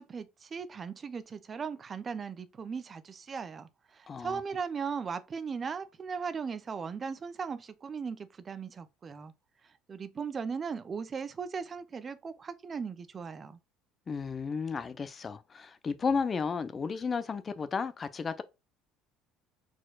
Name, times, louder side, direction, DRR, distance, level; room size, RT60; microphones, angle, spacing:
voice 1, 0.0-9.3 9.6-13.6, right 6 dB, 35° right, 0.5 m, -38 dB
voice 2, 4.1-4.4 14.1-18.4, left 5 dB, 30° left, 0.6 m, -33 dB
4.3 x 4.3 x 2.3 m
supercardioid pair, 90°, 0 cm